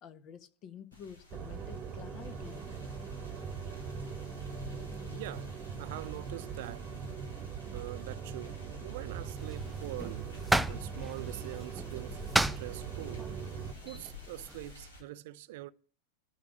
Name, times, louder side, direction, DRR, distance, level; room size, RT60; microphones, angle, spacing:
voice 1, 0.0-2.6, left 8 dB, 35° left, 1.4 m, -49 dB
sound 1, 0.9-15.0, left 3 dB, 80° left, 5.4 m, -52 dB
sound 2, 1.3-13.7, right 6 dB, 30° right, 1.3 m, -41 dB
voice 2, 5.1-6.9 7.7-10.3 10.7-13.3 13.8-15.7, right 16 dB, 50° right, 0.6 m, -44 dB
sound 3, 9.4-14.7, right 1 dB, 5° right, 0.5 m, -35 dB
13.0 x 5.9 x 8.8 m
figure-of-eight pair, 90°, 0 cm